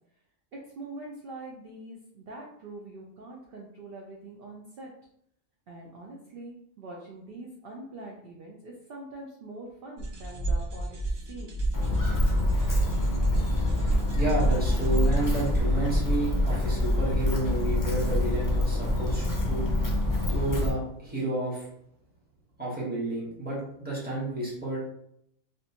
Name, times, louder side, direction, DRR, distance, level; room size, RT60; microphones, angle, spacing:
voice 1, 0.8-4.9 5.7-11.6, right 2 dB, 60° right, -1 dB, 0.6 m, -44 dB
sound 1, 10.0-15.6, right 1 dB, 80° right, 1.2 m, -30 dB
Walk footsteps, 11.7-20.7, left 1 dB, 25° left, 0.4 m, -26 dB
voice 2, 14.1-19.7 20.3-21.7 22.6-24.8, right 1 dB, 10° right, -6 dB, 1.0 m, -31 dB
3.4 x 2.5 x 2.8 m, 0.73 s
omnidirectional pair, 1.4 m